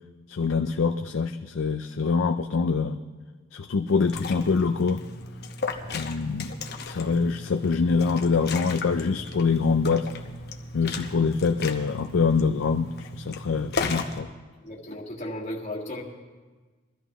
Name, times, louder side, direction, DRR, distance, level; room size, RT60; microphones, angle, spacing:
voice 1, 0.3-3.0 3.5-5.0 5.9-6.6 6.9-10.1 10.7-14.3, left 5 dB, 70° left, 7 dB, 0.4 m, -25 dB
Liquid, 3.9-14.2, left 3 dB, 55° left, 0.9 m, -36 dB
voice 2, 14.6-16.0, left 1 dB, 35° left, -4 dB, 1.8 m, -35 dB
22.5 x 13.0 x 3.0 m, 1.3 s
head